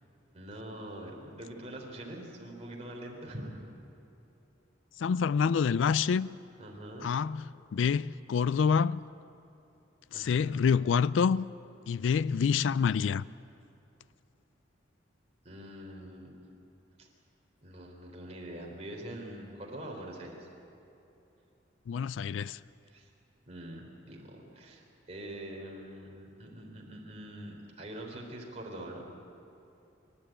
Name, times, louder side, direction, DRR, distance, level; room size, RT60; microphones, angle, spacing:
voice 1, 0.3-3.6 6.6-7.1 10.1-10.5 15.4-16.3 17.0-17.1 17.6-20.5 22.8-23.1 23.5-29.0, right 1 dB, 35° right, 3.5 m, -44 dB
voice 2, 5.0-6.3 7.0-7.4 7.7-9.0 10.2-11.4 11.9-13.2 21.9-22.6, left 6 dB, 85° left, 0.4 m, -27 dB
25.5 x 12.0 x 8.9 m
head